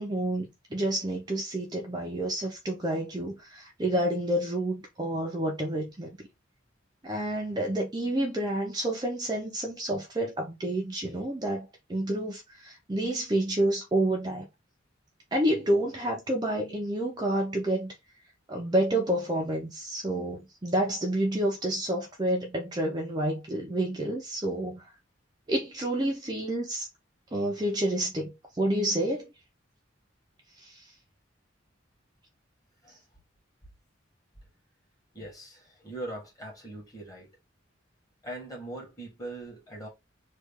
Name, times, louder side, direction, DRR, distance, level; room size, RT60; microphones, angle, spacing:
voice 1, 0.0-6.1 7.0-14.5 15.3-17.9 18.5-24.8 25.5-26.9 27.3-29.3 30.6-30.9, right 1 dB, 20° right, 0.6 m, -29 dB
voice 2, 35.1-37.3 38.2-39.9, right 1 dB, 20° left, 1.5 m, -41 dB
3.1 x 2.4 x 3.5 m
head